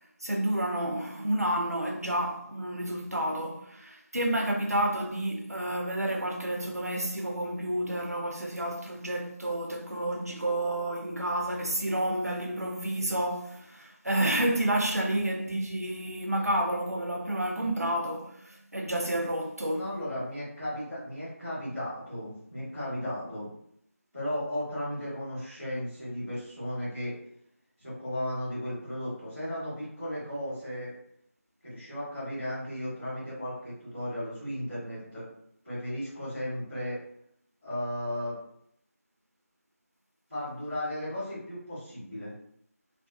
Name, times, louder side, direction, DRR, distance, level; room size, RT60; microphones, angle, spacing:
voice 1, 0.2-19.9, right 1 dB, 80° right, 0.6 m, -30 dB
voice 2, 19.7-23.5 24.1-27.1 27.8-30.9 31.6-35.3 35.6-37.0 37.6-38.4 40.3-42.3, left 1 dB, 5° left, 0.8 m, -35 dB
2.4 x 2.2 x 2.3 m
figure-of-eight pair, 170°, 8 cm